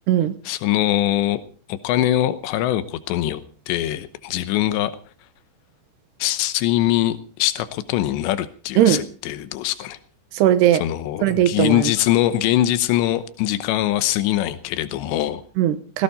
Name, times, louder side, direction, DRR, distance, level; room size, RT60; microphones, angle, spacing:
voice 1, 0.5-1.4 1.7-4.9 6.2-10.0 10.8-15.4, left 14 dB, 90° left, 13 dB, 3.2 m, -22 dB
voice 2, 10.3-10.8 11.2-11.9 15.6-16.0, right 11 dB, 75° right, 12 dB, 3.0 m, -18 dB
18.0 x 17.0 x 4.2 m, 0.39 s
omnidirectional pair, 4.9 m